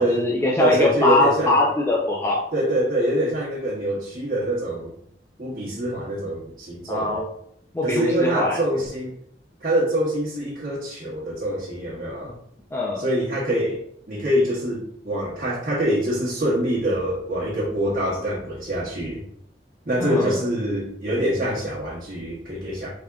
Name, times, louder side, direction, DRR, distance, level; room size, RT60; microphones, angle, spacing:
voice 1, 0.0-2.4 6.9-7.3 7.7-8.6 12.7-13.1 20.0-20.4, left 2 dB, 15° left, -3 dB, 0.4 m, -22 dB
voice 2, 0.6-1.6 2.5-4.9 5.4-7.2 7.8-9.1 9.6-12.3 13.0-13.8 14.1-19.2 19.8-22.9, right 1 dB, 50° right, -8 dB, 0.9 m, -25 dB
3.7 x 3.4 x 2.3 m, 0.69 s
head